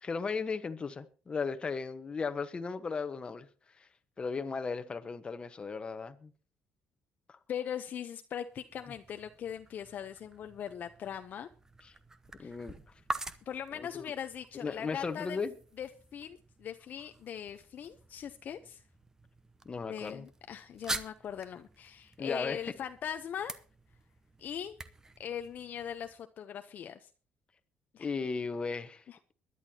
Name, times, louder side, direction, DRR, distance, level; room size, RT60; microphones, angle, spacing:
voice 1, 0.0-3.5 3.8-3.9 4.2-6.3 7.3-7.4 11.8-11.9 12.4-12.7 13.7-14.1 14.6-15.5 19.6-20.3 22.2-22.7 28.0-29.0, left 4 dB, 25° left, 1.2 m, -36 dB
voice 2, 7.5-11.5 12.4-12.5 13.5-15.4 15.8-18.8 19.9-23.6 24.4-24.8 25.2-27.1 27.9-28.1 29.1-29.2, left 9 dB, 50° left, 0.7 m, -40 dB
sound 1, 8.4-26.2, right 2 dB, 15° right, 0.9 m, -46 dB
22.0 x 11.0 x 2.9 m
cardioid pair, 130°, 4 cm